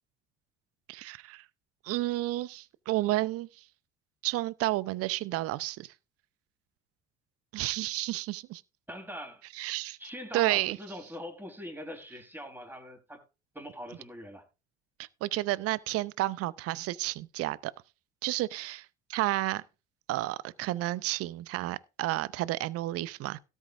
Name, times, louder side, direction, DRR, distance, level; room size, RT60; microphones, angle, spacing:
voice 1, 0.9-1.4 1.8-3.5 4.2-5.9 7.5-8.6 9.5-10.0 10.3-10.8 15.0-17.7 18.2-19.6 20.1-23.4, right 17 dB, 45° right, 0.7 m, -31 dB
voice 2, 8.9-9.4 10.0-13.2 13.5-14.4, equal, 5° right, 3.9 m, -42 dB
17.5 x 8.2 x 2.6 m
figure-of-eight pair, 60°, 32 cm